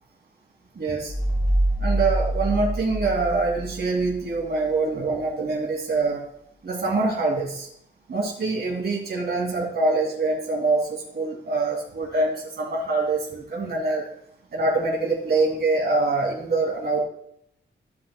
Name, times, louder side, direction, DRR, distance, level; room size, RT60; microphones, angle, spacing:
voice 1, 0.7-1.1 1.8-6.2 6.6-7.7 8.1-14.1 14.5-17.0, right 3 dB, 55° right, -2 dB, 2.6 m, -24 dB
sound 1, 1.1-4.4, right 1 dB, 15° left, 3.7 m, -26 dB
14.5 x 7.5 x 2.3 m, 0.74 s
wide cardioid pair, 150°, 20 cm